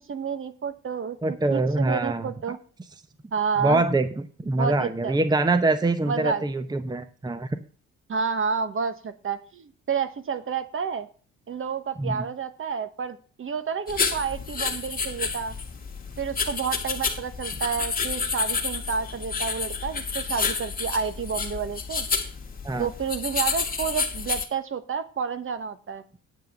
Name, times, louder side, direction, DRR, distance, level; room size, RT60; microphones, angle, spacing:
voice 1, 0.0-2.6 3.3-3.8 4.6-5.1 6.1-6.4 8.1-11.1 11.5-15.6 16.2-22.1 22.8-26.0, right 6 dB, 45° right, 11 dB, 1.2 m, -30 dB
voice 2, 1.2-2.6 3.6-4.1 4.4-7.6 12.0-12.2 22.6-22.9, right 2 dB, 15° right, 10 dB, 0.8 m, -24 dB
sound 1, 13.9-24.5, left 5 dB, 30° left, 1.8 m, -30 dB
9.3 x 5.6 x 6.8 m, 0.40 s
cardioid pair, 90°, 30 cm